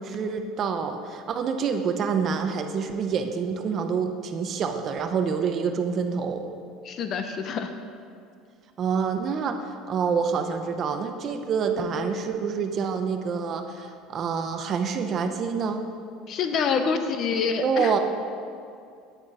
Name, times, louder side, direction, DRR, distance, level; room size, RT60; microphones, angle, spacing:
voice 1, 0.0-6.4 8.8-9.6 9.9-15.9 17.6-18.0, right 6 dB, 35° right, 6 dB, 0.6 m, -27 dB
voice 2, 6.8-7.7 16.3-17.9, left 5 dB, 35° left, 7 dB, 0.6 m, -26 dB
9.0 x 8.9 x 4.9 m, 2.3 s
cardioid pair, 160°, 0 cm